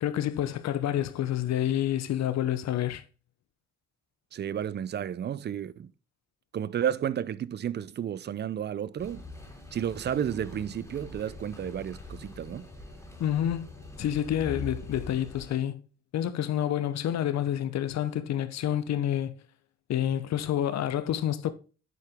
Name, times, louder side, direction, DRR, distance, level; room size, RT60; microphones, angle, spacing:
voice 1, 0.0-3.0 13.2-13.7 14.0-15.8 16.1-19.3 19.9-21.5, left 11 dB, 65° left, 0.8 m, -28 dB
voice 2, 4.3-5.9 6.5-9.2 9.7-12.7, right 9 dB, 35° right, 0.4 m, -32 dB
sound 1, 9.0-15.6, left 2 dB, 10° left, 2.7 m, -43 dB
8.1 x 4.6 x 3.5 m
cardioid pair, 90°, 30 cm